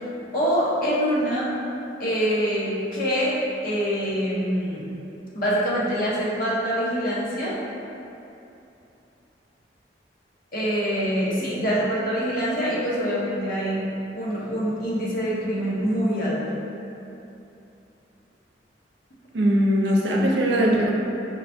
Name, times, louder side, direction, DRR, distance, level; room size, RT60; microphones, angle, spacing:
voice 1, 0.3-1.5 2.0-3.4 3.6-4.9 5.3-7.6 10.5-13.8 14.1-16.6, equal, 55° left, -7 dB, 1.0 m, -25 dB
voice 2, 19.3-20.9, equal, 80° right, -2 dB, 0.6 m, -20 dB
4.9 x 3.3 x 2.7 m, 2.8 s
head